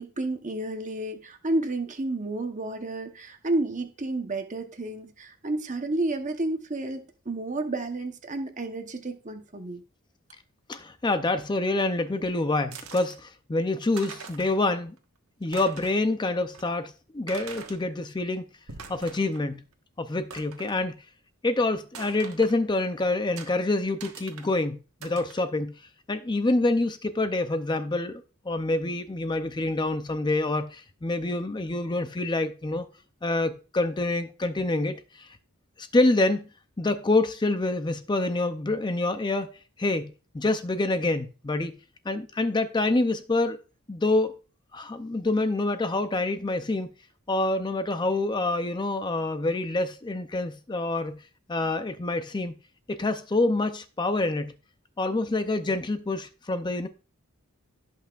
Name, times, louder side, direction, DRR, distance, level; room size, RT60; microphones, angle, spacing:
voice 1, 0.0-9.8, right 2 dB, 35° right, 1.0 m, -31 dB
voice 2, 10.7-15.0 15.4-18.5 18.9-19.6 20.0-20.9 21.4-25.7 26.1-32.8 33.2-35.3 35.8-36.5 36.8-39.5 39.8-41.7 42.1-43.6 43.9-44.4 44.7-46.9 47.3-51.2 51.5-52.5 52.9-54.5 55.0-56.9, left 2 dB, 20° left, 0.5 m, -26 dB
sound 1, 12.7-13.2 13.7-13.8 13.9-14.6 15.0-15.1 15.4-16.1 16.5-16.6 17.3-17.8 18.5-19.5 19.7-19.8 20.3-20.8 21.9-22.6 23.4-23.5 24.0-24.5 25.0-25.4, right 5 dB, 85° right, 1.4 m, -43 dB
16.5 x 5.7 x 2.4 m
head